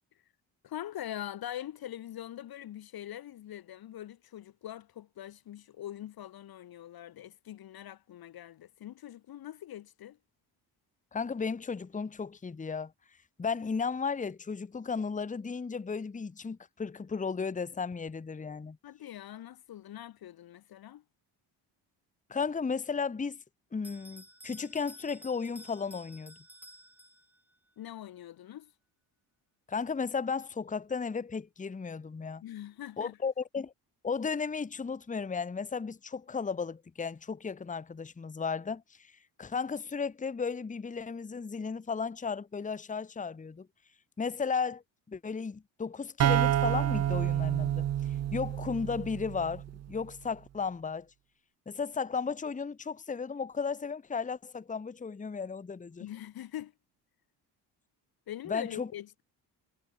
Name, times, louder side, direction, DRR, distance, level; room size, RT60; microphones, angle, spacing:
voice 1, 0.6-10.2 18.8-21.0 27.8-28.7 32.4-33.2 56.0-56.7 58.3-59.2, left 12 dB, 55° left, 0.9 m, -43 dB
voice 2, 11.1-12.9 13.4-18.8 22.3-23.4 23.7-26.4 29.7-32.4 33.0-33.7 34.0-43.7 44.2-44.8 45.1-51.1 51.7-56.0 58.5-58.9, left 5 dB, 15° left, 0.9 m, -34 dB
Bell, 23.8-27.6, right 1 dB, 5° right, 1.6 m, -53 dB
sound 1, 46.2-49.8, right 11 dB, 40° right, 0.5 m, -29 dB
supercardioid pair, 70°, 44 cm